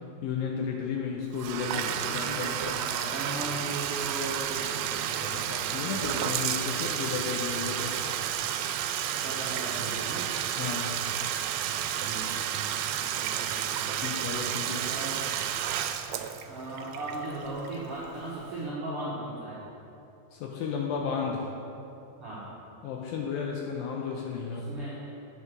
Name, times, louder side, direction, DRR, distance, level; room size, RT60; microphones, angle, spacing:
voice 1, 0.2-2.8 5.2-8.1 10.6-11.0 14.0-14.8 20.3-21.5 22.8-24.7, left 6 dB, 90° left, 0 dB, 2.1 m, -33 dB
Bathtub (filling or washing), 1.3-18.1, right 10 dB, 85° right, 2.7 m, -31 dB
voice 2, 1.7-5.9 9.1-10.3 12.0-12.5 13.1-14.1 14.6-15.2 15.5-15.8 16.5-19.6 22.2-22.5 24.4-25.0, right 2 dB, 60° right, -9 dB, 1.4 m, -38 dB
8.4 x 7.0 x 6.4 m, 2.9 s
omnidirectional pair, 4.9 m